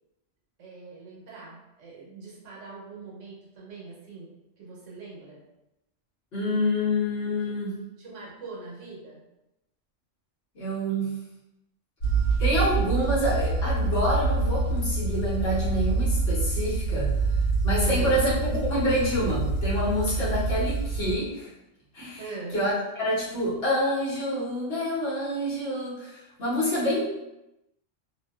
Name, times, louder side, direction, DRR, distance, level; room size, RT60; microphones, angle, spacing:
voice 1, 0.6-4.3 4.6-5.4 7.2-7.5 8.0-9.2 17.8-18.2 22.2-22.6, right 4 dB, 80° right, -4 dB, 1.1 m, -42 dB
voice 2, 6.3-7.7 10.5-11.1 12.4-17.4 17.6-21.5 21.9-22.2 22.5-22.7 23.0-27.0, equal, 55° left, -8 dB, 1.0 m, -27 dB
sound 1, 12.0-21.2, right 3 dB, 80° left, 1.1 m, -26 dB
2.6 x 2.1 x 2.2 m, 0.92 s
omnidirectional pair, 1.3 m